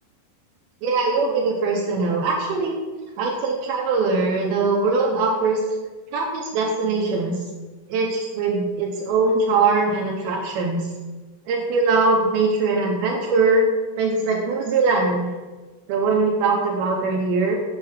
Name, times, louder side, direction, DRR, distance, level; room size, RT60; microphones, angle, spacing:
voice 1, 0.8-2.8 3.2-5.6 6.1-7.4 7.9-10.8 11.5-15.3 15.9-17.6, right 3 dB, 80° right, -1 dB, 2.3 m, -21 dB
8.3 x 3.1 x 6.3 m, 1.3 s
omnidirectional pair, 5.0 m